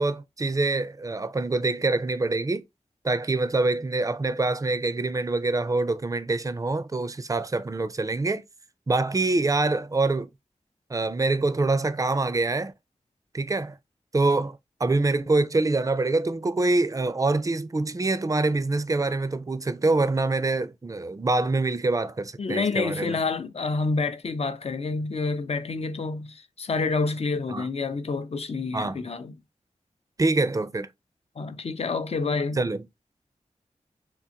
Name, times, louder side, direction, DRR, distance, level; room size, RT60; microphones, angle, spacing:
voice 1, 0.0-2.6 3.0-8.4 8.9-10.3 10.9-12.7 13.3-13.8 14.1-23.2 27.5-27.7 28.7-29.0 30.2-30.9 32.6-32.8, right 2 dB, 25° right, 0.4 m, -25 dB
voice 2, 22.4-29.3 31.4-32.6, left 4 dB, 55° left, 0.5 m, -28 dB
3.7 x 2.5 x 2.7 m
wide cardioid pair, 55°, 13 cm